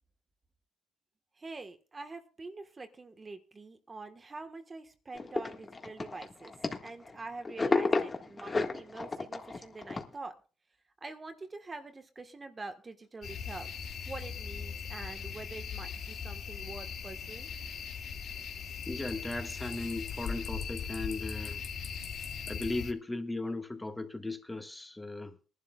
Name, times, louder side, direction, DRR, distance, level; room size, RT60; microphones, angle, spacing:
voice 1, 1.3-6.5 6.8-10.3 11.0-17.5, right 3 dB, 30° right, 1.4 m, -45 dB
sound 1, 5.1-7.2 7.4-10.1, left 3 dB, 30° left, 1.7 m, -32 dB
sound 2, 13.2-22.9, left 6 dB, 65° left, 1.9 m, -39 dB
voice 2, 18.9-21.6 22.5-25.4, left 2 dB, 15° left, 1.6 m, -37 dB
23.0 x 11.5 x 2.3 m
cardioid pair, 90°, 0 cm